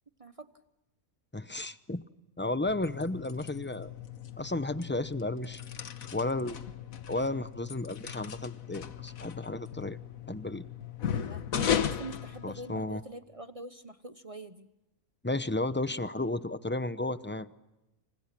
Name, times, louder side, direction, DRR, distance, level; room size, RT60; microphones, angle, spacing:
voice 1, 1.3-2.0 2.4-3.9 4.4-5.6 6.1-6.6 7.1-10.0 10.3-10.6 12.4-13.0 15.2-17.5, left 2 dB, 10° left, 12 dB, 0.5 m, -33 dB
sound 1, 2.6-13.1, left 8 dB, 65° left, 1.5 m, -37 dB
voice 2, 11.2-14.7, right 2 dB, 25° right, 10 dB, 0.9 m, -45 dB
29.5 x 26.5 x 6.0 m, 0.97 s
omnidirectional pair, 1.6 m